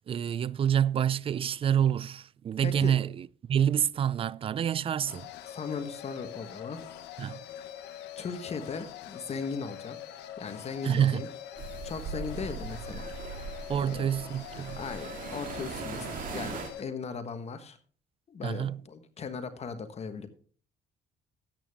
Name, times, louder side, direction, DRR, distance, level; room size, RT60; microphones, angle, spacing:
voice 1, 0.1-5.3 7.2-7.4 10.8-11.2 13.7-14.8 18.4-18.8, right 9 dB, 35° right, 0.4 m, -27 dB
voice 2, 2.6-2.9 5.5-6.8 8.2-10.0 10.4-11.3 11.8-13.1 13.8-14.1 14.8-17.8 18.3-20.3, left 5 dB, 40° left, 1.3 m, -38 dB
sound 1, 5.1-16.8, left 10 dB, 85° left, 1.1 m, -44 dB
sound 2, 11.6-16.7, right 5 dB, 55° right, 2.2 m, -40 dB
13.5 x 8.7 x 3.6 m
cardioid pair, 110°, 17 cm